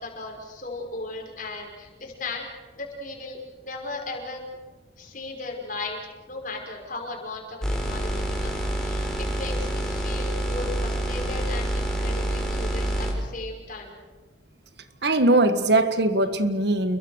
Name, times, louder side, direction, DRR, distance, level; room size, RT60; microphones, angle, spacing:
voice 1, 0.0-2.5 2.8-3.4 3.6-4.6 5.0-6.0 6.3-14.0, left 3 dB, 45° left, 5.7 m, -36 dB
sound 1, 7.6-13.1, right 1 dB, 5° left, 4.7 m, -27 dB
voice 2, 15.0-17.0, right 2 dB, 60° right, 1.7 m, -21 dB
29.0 x 23.0 x 6.5 m
head